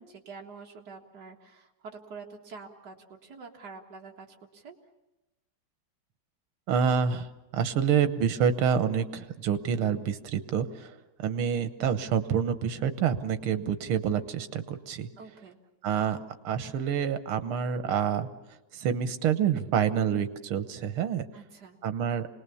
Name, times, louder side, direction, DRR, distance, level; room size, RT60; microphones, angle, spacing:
voice 1, 0.0-4.3 4.5-4.8 15.2-15.6 21.3-21.8, right 4 dB, 50° right, 1 dB, 2.4 m, -46 dB
voice 2, 6.7-7.3 7.5-10.9 11.2-15.1 15.8-16.2 16.4-18.3 18.7-21.3 21.8-22.3, right 7 dB, 90° right, 11 dB, 1.9 m, -27 dB
26.0 x 19.5 x 7.0 m, 1.0 s
omnidirectional pair, 2.3 m